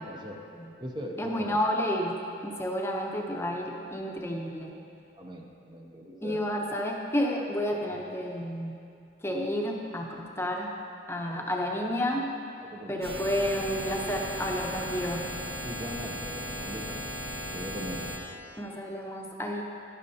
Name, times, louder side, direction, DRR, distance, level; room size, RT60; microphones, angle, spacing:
voice 1, 0.1-0.4 0.8-1.6 5.2-6.4 11.2-11.5 12.6-13.2 15.6-17.0 17.5-18.1, equal, 25° right, 0 dB, 0.6 m, -40 dB
voice 2, 1.2-4.7 6.2-8.7 9.2-10.7 11.1-12.3 12.9-15.2 18.6-19.6, equal, 15° left, 0 dB, 0.7 m, -31 dB
sound 1, 13.0-18.2, equal, 75° right, 1.5 m, -36 dB
12.0 x 10.5 x 2.8 m, 2.6 s
head